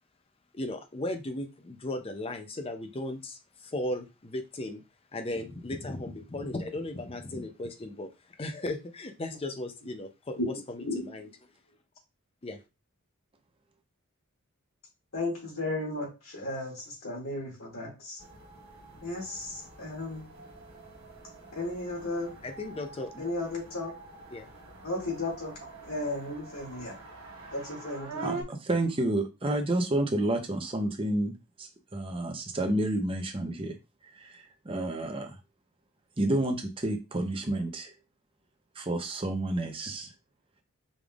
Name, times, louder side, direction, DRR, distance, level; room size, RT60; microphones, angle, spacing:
voice 1, 0.5-4.8 5.1-8.1 8.4-11.3 12.4-12.6 22.4-23.2 24.3-24.5, left 1 dB, 25° left, 0.5 m, -36 dB
voice 2, 10.4-11.3 15.1-18.2 19.0-20.3 21.5-22.3 23.2-23.9 24.8-25.5 25.8-26.9 27.5-28.4, left 2 dB, 75° left, 2.3 m, -35 dB
sound 1, 18.2-28.4, right 3 dB, 70° right, 1.3 m, -45 dB
voice 3, 28.2-33.8 34.1-35.3 36.2-37.9 38.8-40.1, right 1 dB, 25° right, 0.7 m, -30 dB
5.1 x 3.4 x 2.4 m
head